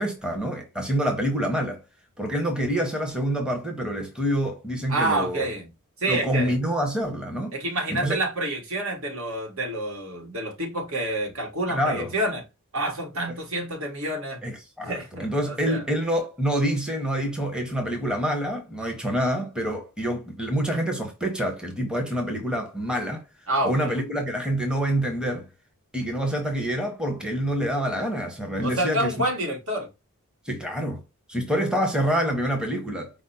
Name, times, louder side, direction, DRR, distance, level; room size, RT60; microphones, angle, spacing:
voice 1, 0.0-1.8 2.2-5.4 6.1-7.5 7.9-8.2 11.7-12.1 14.4-23.2 23.6-25.5 25.9-29.1 30.4-31.0 31.3-33.2, equal, 5° right, 0.8 m, -26 dB
voice 2, 4.9-5.7 6.0-6.5 7.5-12.4 12.7-14.4 14.8-15.8 23.5-23.9 28.6-29.9, right 1 dB, 65° right, 1.4 m, -28 dB
5.0 x 2.0 x 4.1 m
head